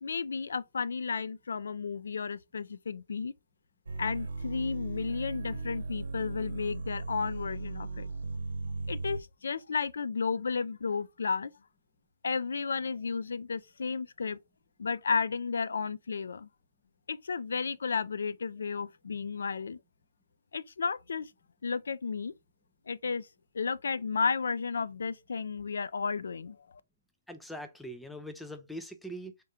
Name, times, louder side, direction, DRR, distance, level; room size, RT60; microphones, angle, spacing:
voice 1, 0.0-3.3 4.0-8.1 8.9-11.5 12.2-14.4 14.8-16.5 17.1-19.8 20.5-21.3 21.6-22.3 22.9-23.3 23.5-26.8, left 5 dB, 80° left, 0.3 m, -33 dB
sound 1, 3.9-9.2, right 3 dB, 75° right, 1.0 m, -37 dB
voice 2, 27.3-29.4, equal, ahead, 0.3 m, -42 dB
3.6 x 2.2 x 4.2 m
hypercardioid pair, 170°, 0 cm